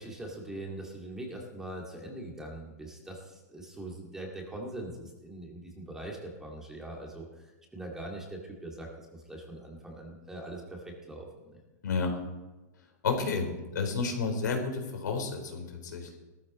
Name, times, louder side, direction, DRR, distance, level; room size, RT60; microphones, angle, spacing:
voice 1, 0.0-7.3 7.7-11.6, right 1 dB, 5° right, 0 dB, 2.0 m, -42 dB
voice 2, 13.0-13.5 13.7-16.2, left 4 dB, 85° left, 4 dB, 4.0 m, -31 dB
17.5 x 13.5 x 4.1 m, 1.1 s
hypercardioid pair, 155°, 10 cm